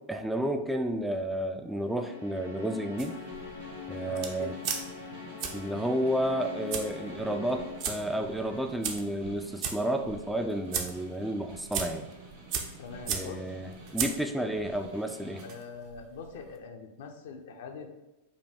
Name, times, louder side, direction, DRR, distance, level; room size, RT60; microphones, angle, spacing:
voice 1, 0.1-3.2 3.9-4.5 5.5-12.1 13.1-15.4, right 1 dB, 5° right, 5 dB, 0.3 m, -31 dB
sound 1, 1.7-8.6, left 7 dB, 90° left, 0.9 m, -43 dB
Snare drum, 2.8-15.5, right 3 dB, 65° right, 1.2 m, -50 dB
sound 2, 3.0-16.6, right 7 dB, 50° right, 0.6 m, -39 dB
voice 2, 4.0-4.6 12.8-13.5 15.4-17.9, left 5 dB, 65° left, 4 dB, 0.6 m, -43 dB
5.2 x 2.3 x 3.4 m, 0.98 s
figure-of-eight pair, 95°, 0 cm